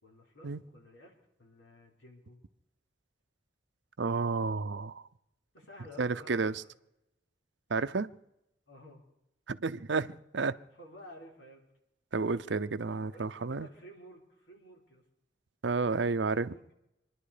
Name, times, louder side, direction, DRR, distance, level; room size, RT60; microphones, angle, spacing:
voice 1, 0.0-1.1 1.4-2.4 5.5-6.7 8.7-9.0 10.8-11.6 13.1-15.0 16.1-16.7, equal, 90° left, -1 dB, 4.3 m, -53 dB
voice 2, 4.0-5.1 6.0-6.6 7.7-8.1 9.5-10.6 12.1-13.7 15.6-16.6, right 4 dB, 70° right, 14 dB, 0.6 m, -31 dB
26.0 x 11.0 x 5.0 m, 0.86 s
head